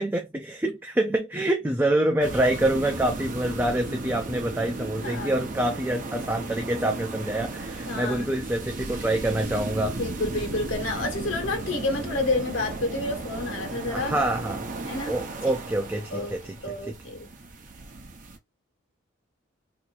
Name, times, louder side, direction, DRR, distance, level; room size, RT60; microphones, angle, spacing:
voice 1, 0.0-10.0 13.9-14.7 15.1-16.6 16.8-16.9, right 1 dB, 10° right, 0.4 m, -26 dB
sound 1, 2.2-18.4, right 2 dB, 40° right, 0.7 m, -35 dB
voice 2, 5.0-5.3 7.9-8.3 10.0-14.2 14.8-15.1 15.4-15.5 16.1-16.3 16.6-17.3, left 2 dB, 75° left, 1.2 m, -29 dB
2.9 x 2.6 x 4.0 m
head